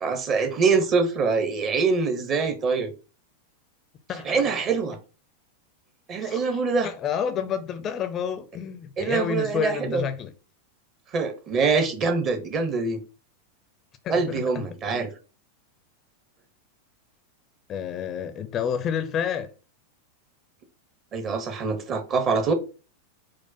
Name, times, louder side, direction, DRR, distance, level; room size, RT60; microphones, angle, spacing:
voice 1, 0.0-2.9 4.2-5.0 6.1-6.9 9.0-10.0 11.1-13.0 14.1-15.1 21.1-22.5, right 4 dB, 30° right, 0.7 m, -24 dB
voice 2, 4.1-4.5 6.2-10.3 14.0-15.1 17.7-19.5, left 8 dB, 30° left, 0.4 m, -30 dB
4.6 x 2.1 x 4.0 m
figure-of-eight pair, 90°, 0 cm